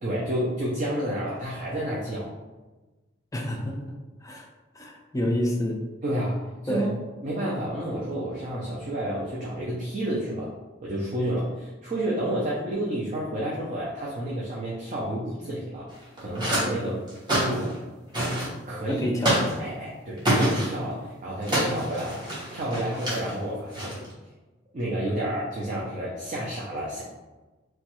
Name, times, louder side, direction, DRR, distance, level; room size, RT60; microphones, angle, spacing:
voice 1, 0.0-2.3 6.0-6.9 7.2-10.5 10.8-15.9 16.2-17.7 18.7-19.1 19.6-23.9 24.7-27.0, right 1 dB, 40° right, -5 dB, 0.5 m, -30 dB
voice 2, 3.3-3.9 4.2-4.5 4.7-5.8 6.7-6.9 18.9-19.4, equal, 15° left, 0 dB, 0.4 m, -28 dB
sound 1, 15.9-16.7 17.1-17.8 18.1-18.5 19.2-19.5 20.2-20.7 21.4-23.3 23.7-24.1, equal, 20° right, 0.9 m, -26 dB
3.0 x 2.3 x 2.9 m, 1.2 s
head